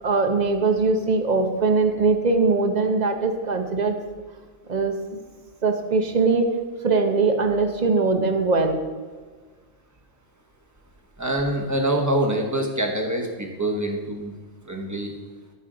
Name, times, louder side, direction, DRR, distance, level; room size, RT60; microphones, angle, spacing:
voice 1, 0.0-3.9 4.7-5.2 5.6-6.5 6.8-8.8, right 3 dB, 40° right, 5 dB, 0.8 m, -21 dB
voice 2, 11.2-14.3 14.7-15.2, right 1 dB, 15° right, 1 dB, 1.0 m, -25 dB
14.0 x 5.1 x 3.8 m, 1.4 s
omnidirectional pair, 1.3 m